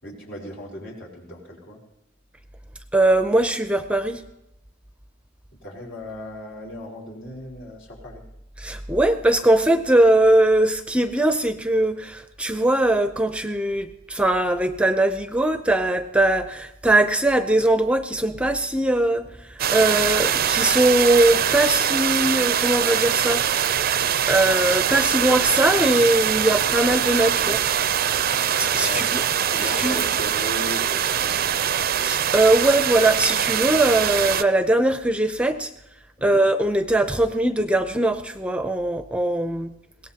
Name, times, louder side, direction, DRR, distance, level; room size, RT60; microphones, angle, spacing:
voice 1, 0.0-1.8 5.6-8.2 28.3-29.2 29.5-31.6 36.2-36.4, left 1 dB, 70° left, -1 dB, 4.4 m, -37 dB
voice 2, 2.9-4.2 8.6-23.4 24.3-27.7 28.5-29.2 29.6-30.0 32.0-35.7 36.2-39.7, right 1 dB, 5° right, 8 dB, 0.6 m, -21 dB
sound 1, 19.6-34.4, right 9 dB, 50° right, 0.5 m, -23 dB
22.0 x 17.5 x 2.9 m, 0.89 s
head